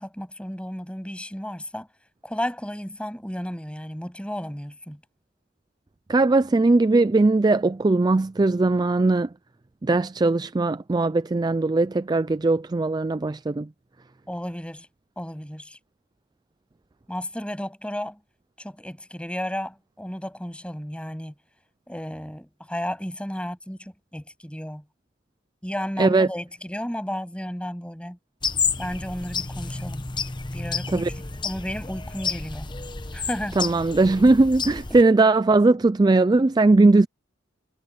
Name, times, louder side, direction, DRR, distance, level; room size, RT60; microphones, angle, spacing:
voice 1, 0.0-1.9 2.2-5.0 14.3-14.9 15.2-15.8 17.1-18.2 18.6-21.3 21.9-24.8 25.6-28.2 28.8-30.0 30.5-31.1 31.4-32.7 33.1-33.6, equal, 5° left, 7.9 m, -33 dB
voice 2, 6.1-9.3 9.8-13.7 26.0-26.3 30.9-31.1 33.6-37.1, right 2 dB, 20° right, 0.4 m, -19 dB
sound 1, 28.4-35.0, left 5 dB, 25° left, 1.0 m, -30 dB
head